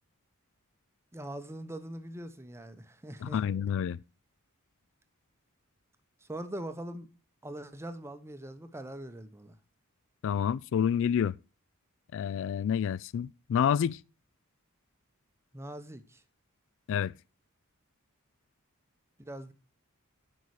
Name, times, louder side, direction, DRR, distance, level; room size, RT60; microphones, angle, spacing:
voice 1, 1.1-3.4 6.2-7.1 7.4-9.6 15.5-16.2 19.2-19.5, right 1 dB, 10° right, 0.7 m, -42 dB
voice 2, 3.2-4.0 10.2-11.4 12.1-14.0 16.9-17.1, left 8 dB, 60° left, 0.3 m, -28 dB
8.4 x 5.5 x 4.7 m
head